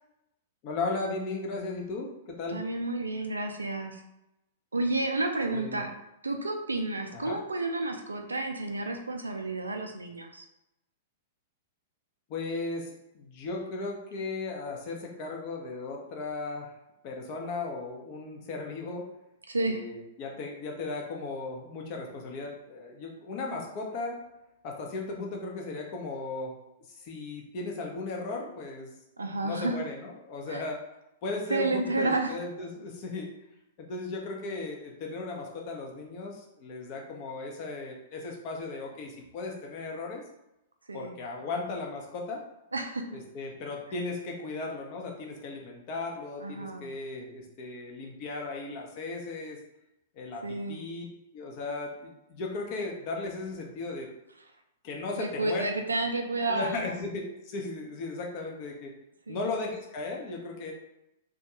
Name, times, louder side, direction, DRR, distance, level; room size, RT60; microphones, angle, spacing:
voice 1, 0.6-2.6 5.5-5.8 7.1-7.4 12.3-12.9 13.1-16.7 17.0-19.1 19.7-24.2 24.6-26.5 26.9-28.9 29.2-30.8 31.2-33.3 33.8-40.2 40.9-42.4 43.1-49.6 50.2-51.0 51.3-54.1 54.8-55.6 56.5-58.9 59.3-60.7, left 3 dB, 45° left, 0 dB, 0.7 m, -36 dB
voice 2, 2.5-4.0 4.7-5.9 6.2-10.4 19.5-19.8 29.2-29.8 30.5-30.6 31.5-32.4 40.9-41.2 42.7-43.0 46.4-46.9 50.4-50.8 55.2-56.9 59.3-59.6, right 2 dB, 85° right, 4 dB, 0.4 m, -31 dB
2.3 x 2.3 x 2.9 m, 0.89 s
figure-of-eight pair, 105°, 0 cm